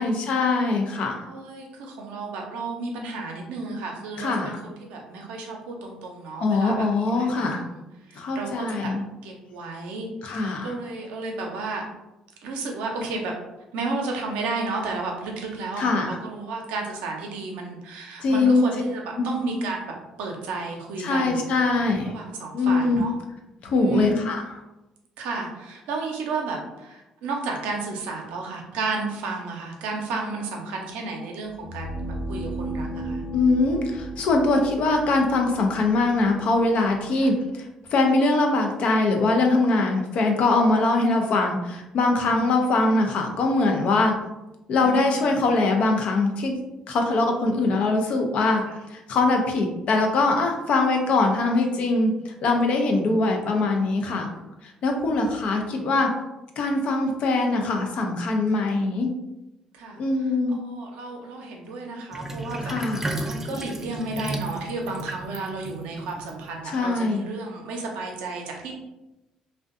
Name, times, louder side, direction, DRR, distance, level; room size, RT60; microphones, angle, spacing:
voice 1, 0.0-1.2 4.2-4.6 6.4-7.6 8.2-9.0 10.2-10.7 15.8-16.1 18.2-18.6 19.2-19.4 21.0-22.1 22.5-23.0 23.6-24.4 33.3-37.4 37.9-44.1 44.7-46.6 46.9-48.6 48.9-52.1 52.4-54.3 54.8-56.1 56.6-59.1 60.0-60.6 62.6-63.1 66.7-67.3, left 3 dB, 65° left, 3 dB, 0.5 m, -22 dB
voice 2, 1.3-8.9 9.2-11.8 12.4-13.3 13.7-21.5 22.0-23.1 23.7-24.2 25.2-33.2 37.1-37.3 40.4-40.7 42.2-42.5 44.8-45.2 48.7-48.8 53.6-54.4 55.2-55.6 58.6-58.7 59.7-68.8, right 3 dB, 80° right, 1 dB, 0.5 m, -33 dB
sound 1, 31.5-37.4, right 1 dB, 10° left, 0.8 m, -35 dB
Sink (filling or washing), 62.1-66.9, right 1 dB, 20° right, 0.4 m, -34 dB
2.5 x 2.1 x 2.5 m, 0.97 s
supercardioid pair, 60°, 2 cm